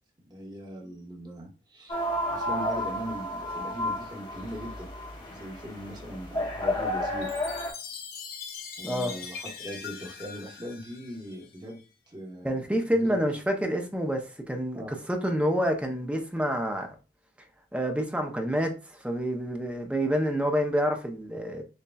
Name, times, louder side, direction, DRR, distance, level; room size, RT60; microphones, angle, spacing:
voice 1, 0.2-2.0 2.3-4.9 5.2-7.3 8.8-11.8 12.1-13.3 14.7-14.9, equal, 25° right, 1.1 m, -40 dB
sound 1, 1.9-7.7, left 1 dB, 30° left, 0.9 m, -32 dB
Chime, 7.2-11.8, left 6 dB, 55° left, 0.6 m, -41 dB
voice 2, 8.8-9.2 12.4-16.9 17.7-21.6, equal, 5° right, 0.5 m, -28 dB
6.5 x 2.2 x 2.3 m
head